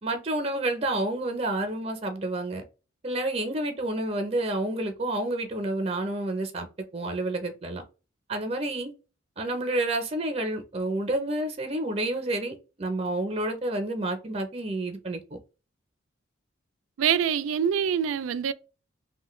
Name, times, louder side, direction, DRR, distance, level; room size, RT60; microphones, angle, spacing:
voice 1, 0.0-2.6 3.0-6.7 6.9-7.8 8.3-8.9 9.4-15.2, right 1 dB, 30° right, 0.6 m, -29 dB
voice 2, 17.0-18.5, right 8 dB, 90° right, 0.3 m, -25 dB
3.1 x 2.2 x 3.0 m
head